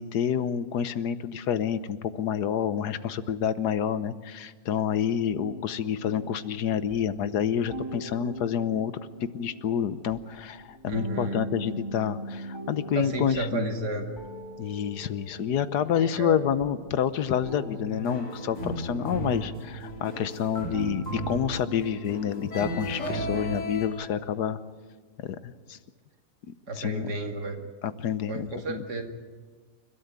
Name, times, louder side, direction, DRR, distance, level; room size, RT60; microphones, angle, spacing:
voice 1, 0.0-13.7 14.6-24.6 25.2-25.8 26.8-27.1 27.8-28.8, left 8 dB, 80° left, 13 dB, 1.5 m, -28 dB
sound 1, 5.3-22.2, equal, 15° right, 2.6 m, -41 dB
voice 2, 10.9-11.4 12.9-14.1 15.9-16.4 26.7-27.6 28.3-29.0, right 2 dB, 80° right, 3 dB, 2.9 m, -32 dB
sound 2, 17.9-23.9, right 1 dB, 55° left, 5.0 m, -35 dB
29.5 x 13.0 x 9.7 m, 1.5 s
omnidirectional pair, 1.7 m